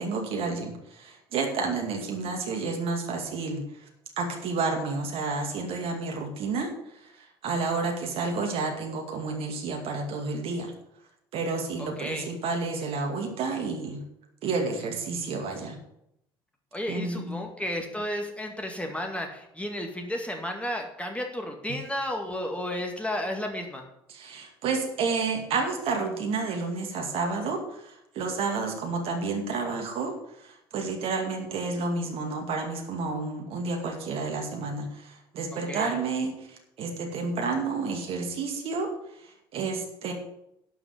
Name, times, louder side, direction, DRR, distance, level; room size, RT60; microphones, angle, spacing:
voice 1, 0.0-3.9 4.2-10.7 11.3-14.0 14.4-15.8 16.9-17.4 24.1-40.1, right 4 dB, 50° right, 2 dB, 2.3 m, -30 dB
voice 2, 11.8-12.3 16.7-23.9 35.7-36.0, left 1 dB, 10° left, 3 dB, 2.1 m, -33 dB
12.0 x 5.0 x 8.2 m, 0.80 s
figure-of-eight pair, 60°, 13 cm